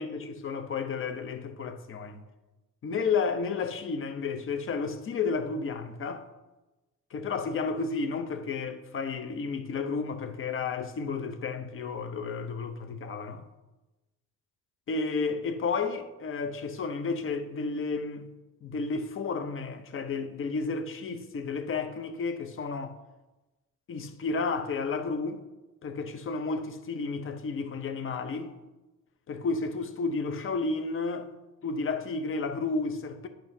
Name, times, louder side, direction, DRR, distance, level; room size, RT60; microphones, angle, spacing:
voice 1, 0.0-2.2 2.8-6.3 7.1-13.4 14.9-18.3 18.6-23.0 23.9-25.4 25.8-28.6 29.3-31.3 31.6-33.3, left 4 dB, 45° left, 0.7 m, -32 dB
8.8 x 5.5 x 2.7 m
cardioid pair, 90°, 30 cm